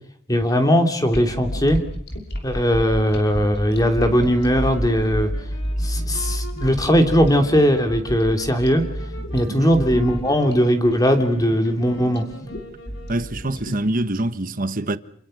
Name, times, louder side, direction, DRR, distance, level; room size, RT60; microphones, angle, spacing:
voice 1, 0.3-1.8 2.4-5.3 5.8-8.8 9.3-12.2, equal, 20° left, 3.0 m, -19 dB
sound 1, 1.1-14.2, equal, 55° left, 6.1 m, -30 dB
sound 2, 3.6-13.6, equal, 75° left, 6.3 m, -42 dB
voice 2, 13.1-15.0, right 1 dB, 40° right, 1.3 m, -25 dB
29.0 x 22.0 x 6.6 m
head